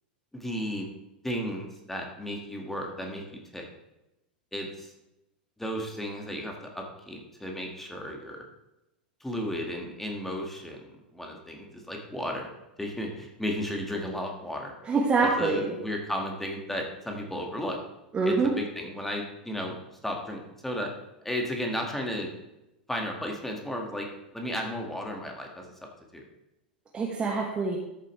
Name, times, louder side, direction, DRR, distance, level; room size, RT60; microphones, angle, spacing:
voice 1, 0.3-0.9 1.2-3.7 4.5-4.9 5.6-8.4 9.2-10.8 11.1-12.5 12.8-14.7 15.2-17.8 18.2-19.8 20.0-20.9 21.2-22.3 22.9-24.1 24.3-25.7 26.1-26.2, equal, 5° left, 1 dB, 1.9 m, -34 dB
voice 2, 14.8-15.7 18.1-18.5 26.9-27.8, right 4 dB, 20° right, 0 dB, 1.3 m, -25 dB
13.5 x 7.5 x 3.3 m, 0.92 s
figure-of-eight pair, 90°, 5 cm